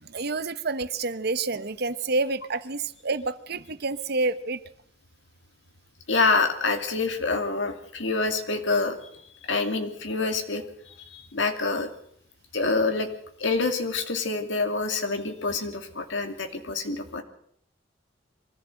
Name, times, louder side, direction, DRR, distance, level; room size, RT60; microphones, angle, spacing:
voice 1, 0.0-4.6, right 3 dB, 60° right, 13 dB, 1.1 m, -28 dB
voice 2, 6.1-9.0 9.4-10.6 11.1-11.9 12.5-13.1 13.4-17.2, left 3 dB, 80° left, 5 dB, 2.6 m, -26 dB
23.5 x 14.5 x 7.8 m, 0.64 s
head